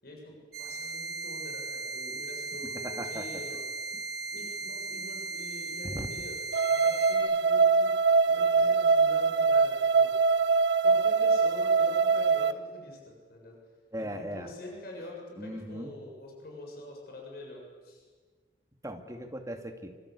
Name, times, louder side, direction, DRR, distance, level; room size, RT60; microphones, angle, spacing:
voice 1, 0.0-4.0 4.3-6.4 6.7-7.9 8.3-10.3 10.8-13.0 13.3-13.6 14.0-18.0, left 1 dB, 60° left, -1 dB, 7.5 m, -46 dB
sound 1, 0.5-7.1, right 3 dB, 60° right, 4.7 m, -37 dB
voice 2, 2.8-3.3 3.9-4.0 5.8-6.1 13.9-14.5 15.4-15.9 18.8-19.9, equal, 20° right, 4 dB, 2.5 m, -38 dB
sound 2, 6.5-12.5, right 4 dB, 85° right, 1.3 m, -23 dB
27.0 x 26.0 x 8.5 m, 1.5 s
head